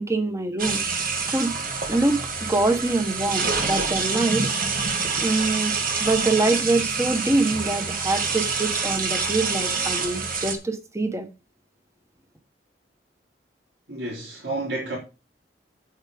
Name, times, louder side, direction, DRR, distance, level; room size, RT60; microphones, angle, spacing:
voice 1, 0.0-1.5 1.9-2.2 2.5-4.5 4.8-4.9 5.2-5.7 6.0-11.3, right 2 dB, 15° right, 1.3 m, -24 dB
sound 1, 0.6-10.5, right 4 dB, 55° right, 2.0 m, -26 dB
voice 2, 13.9-15.0, right 2 dB, 85° right, 4.1 m, -31 dB
8.3 x 8.2 x 5.1 m
head